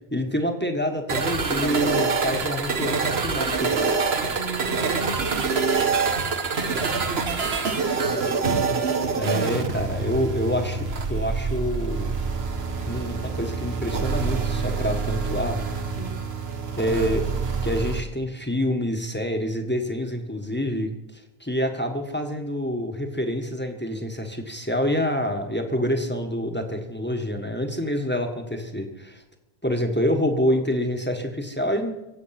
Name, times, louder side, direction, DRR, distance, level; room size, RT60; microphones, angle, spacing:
voice 1, 0.1-3.7 9.1-12.2 12.8-15.6 16.8-17.3 17.6-29.2 29.6-31.9, equal, 10° left, 4 dB, 1.5 m, -27 dB
sound 1, 1.1-18.0, right 4 dB, 75° right, 1.5 m, -26 dB
voice 2, 4.4-5.6 6.9-7.6 16.0-16.3, right 3 dB, 50° right, 5 dB, 1.0 m, -36 dB
23.5 x 8.3 x 5.9 m, 1.0 s
omnidirectional pair, 1.1 m